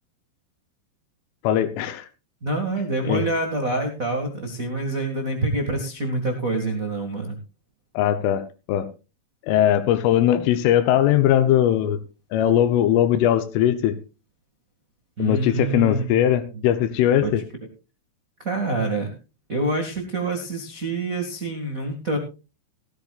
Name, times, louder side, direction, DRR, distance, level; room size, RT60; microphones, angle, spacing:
voice 1, 1.4-2.1 3.1-3.2 8.0-8.9 9.4-12.0 12.3-14.0 15.2-17.4, left 11 dB, 85° left, 10 dB, 3.5 m, -20 dB
voice 2, 2.4-7.4 15.2-16.2 17.2-17.3 18.4-19.1 19.5-22.2, right 2 dB, 65° right, 3 dB, 0.8 m, -26 dB
17.5 x 13.5 x 2.5 m, 0.30 s
omnidirectional pair, 5.6 m